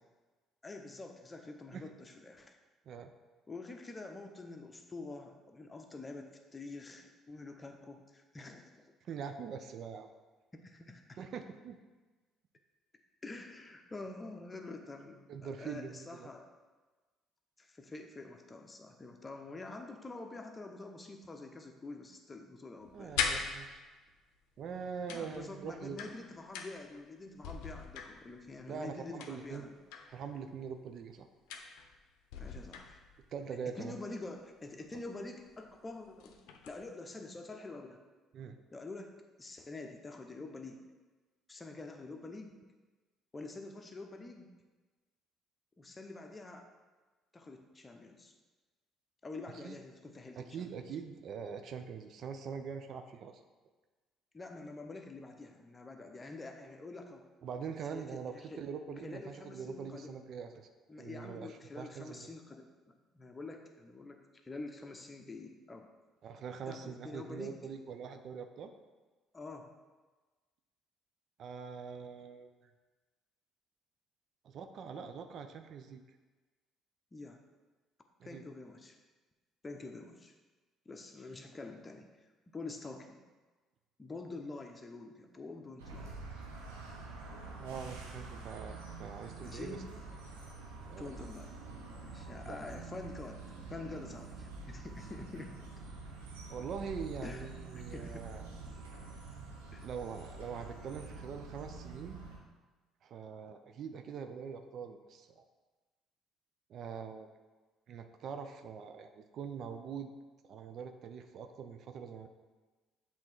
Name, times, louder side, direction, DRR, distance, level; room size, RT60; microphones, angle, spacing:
voice 1, 0.6-2.6 3.5-8.9 10.5-11.2 13.2-16.5 17.6-23.2 25.1-29.7 32.4-33.0 33.7-36.4 36.7-38.0 38.7-40.8 41.5-42.7 43.3-44.5 45.8-46.7 47.3-48.3 49.2-50.7 54.3-57.3 57.9-58.6 59.0-60.2 60.9-65.9 66.7-67.6 69.3-69.7 77.1-77.4 78.2-79.0 79.6-80.3 80.8-82.1 82.5-83.2 84.0-86.2 89.4-89.8 90.9-91.6 92.0-93.4 93.7-95.6 97.2-98.3 99.7-99.9, left 3 dB, 25° left, 4 dB, 0.9 m, -47 dB
voice 2, 9.0-10.1 11.2-11.8 15.3-16.3 22.9-23.8 24.6-26.1 28.7-29.7 30.1-31.3 33.3-34.0 38.3-38.6 49.5-49.8 50.4-53.4 57.4-60.7 61.0-62.3 66.2-68.7 71.4-72.5 74.4-76.0 78.2-78.4 87.6-89.8 90.8-91.2 92.5-92.6 96.5-98.4 99.8-102.2 103.0-105.4 106.7-107.3 107.9-110.1 110.4-112.3, right 6 dB, 60° right, 7 dB, 0.5 m, -43 dB
sound 1, 22.8-24.1 25.1-27.0 27.3-28.6 29.2-30.2 31.5-32.0 32.3-33.3 34.9-35.0 35.5-35.6 36.0-36.8, left 6 dB, 75° left, 0.6 m, -40 dB
sound 2, 85.8-102.4, right 3 dB, 90° right, 0.9 m, -47 dB
7.5 x 3.6 x 4.5 m, 1.3 s
hypercardioid pair, 60°, 0 cm